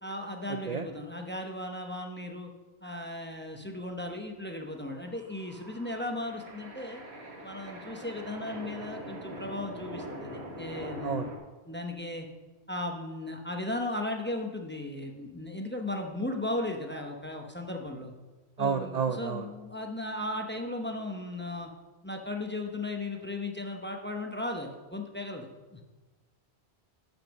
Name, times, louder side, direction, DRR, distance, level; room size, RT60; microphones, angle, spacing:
voice 1, 0.0-2.5 2.8-7.0 7.4-11.3 11.7-12.3 12.7-18.1 18.6-21.7 22.0-25.8, left 1 dB, 10° left, 3 dB, 0.7 m, -36 dB
sound 1, 4.9-11.4, right 1 dB, 75° right, 1.6 m, -43 dB
voice 2, 18.6-19.4, right 6 dB, 55° right, 8 dB, 0.5 m, -30 dB
8.9 x 5.4 x 6.3 m, 1.2 s
omnidirectional pair, 1.1 m